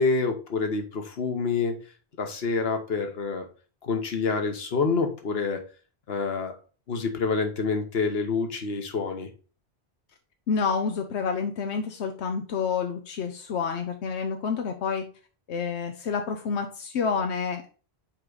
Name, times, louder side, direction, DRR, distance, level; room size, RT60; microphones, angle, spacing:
voice 1, 0.0-1.8 2.2-3.5 3.8-5.6 6.1-6.6 6.9-9.3, left 4 dB, 65° left, 6 dB, 1.4 m, -27 dB
voice 2, 10.5-15.0 15.5-17.7, left 5 dB, 90° left, 5 dB, 1.0 m, -28 dB
6.0 x 4.7 x 3.9 m, 0.36 s
omnidirectional pair, 1.1 m